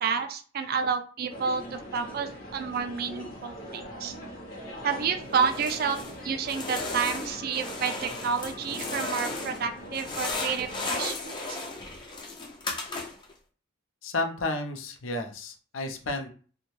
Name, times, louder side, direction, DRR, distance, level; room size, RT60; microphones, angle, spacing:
voice 1, 0.0-4.1 4.8-6.0 6.2-11.6, right 6 dB, 50° right, 8 dB, 0.4 m, -30 dB
sound 1, 1.3-11.0, equal, 45° left, 0.7 m, -42 dB
sound 2, 5.3-6.2 6.5-9.6 9.9-13.3, left 3 dB, 25° left, 0.4 m, -35 dB
voice 2, 14.0-16.3, left 2 dB, 80° left, 4 dB, 0.6 m, -32 dB
2.6 x 2.1 x 3.0 m, 0.40 s
head